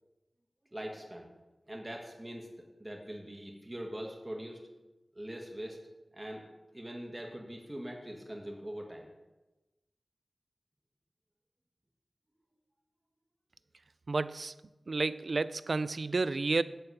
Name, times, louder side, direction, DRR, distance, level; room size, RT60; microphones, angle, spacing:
voice 1, 0.7-1.3 1.7-2.5 2.8-4.6 5.2-5.8 6.1-6.4 6.7-9.1, equal, 25° right, 0 dB, 1.8 m, -42 dB
voice 2, 14.1-14.5 14.9-16.6, right 3 dB, 70° right, 15 dB, 0.4 m, -31 dB
13.5 x 4.5 x 8.0 m, 1.1 s
wide cardioid pair, 55°, 0 cm